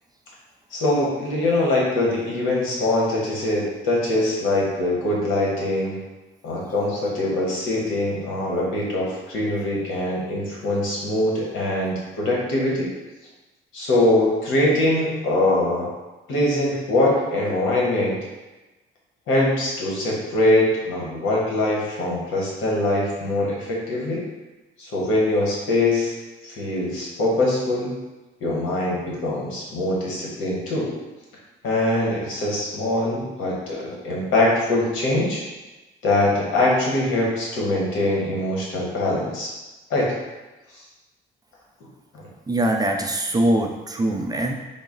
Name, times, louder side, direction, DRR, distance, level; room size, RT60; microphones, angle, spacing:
voice 1, 0.7-6.0 6.4-12.9 13.7-15.9 16.3-18.2 19.3-24.2 24.8-26.1 26.4-27.9 28.4-30.9 31.6-35.5 36.0-39.5 39.9-40.1 40.7-40.8 42.1-42.3, left 1 dB, 85° left, -4 dB, 1.1 m, -23 dB
voice 2, 42.5-44.5, right 1 dB, 20° right, 2 dB, 0.4 m, -22 dB
3.8 x 2.0 x 3.8 m, 1.1 s
cardioid pair, 90°, 20 cm